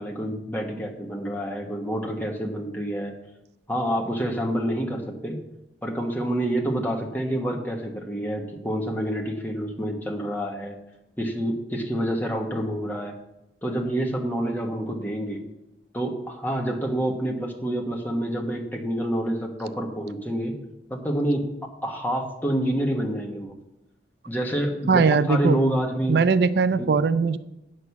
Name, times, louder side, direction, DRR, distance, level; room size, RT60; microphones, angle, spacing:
voice 1, 0.0-3.1 3.7-5.4 5.8-10.8 11.2-13.1 13.6-15.4 15.9-20.6 20.9-21.4 21.8-23.6 24.3-26.2 26.8-26.9, right 1 dB, 10° left, 1 dB, 1.3 m, -27 dB
voice 2, 24.9-25.6 26.1-27.4, right 5 dB, 65° right, 15 dB, 0.4 m, -20 dB
8.7 x 6.4 x 7.0 m, 0.88 s
head